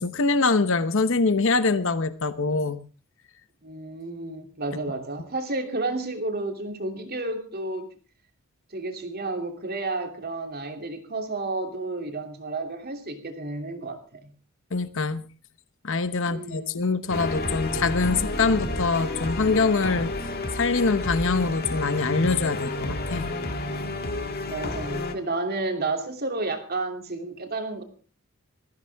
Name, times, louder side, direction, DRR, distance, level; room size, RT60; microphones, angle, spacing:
voice 1, 0.0-2.8 14.7-15.2 15.8-20.1 20.5-23.4, left 4 dB, 60° left, 12 dB, 1.0 m, -24 dB
voice 2, 3.6-7.9 8.7-14.3 16.3-16.8 24.5-27.8, right 2 dB, 45° right, 4 dB, 2.9 m, -31 dB
sound 1, 17.1-25.1, left 2 dB, 45° left, 2.0 m, -30 dB
20.5 x 15.0 x 3.5 m, 0.38 s
head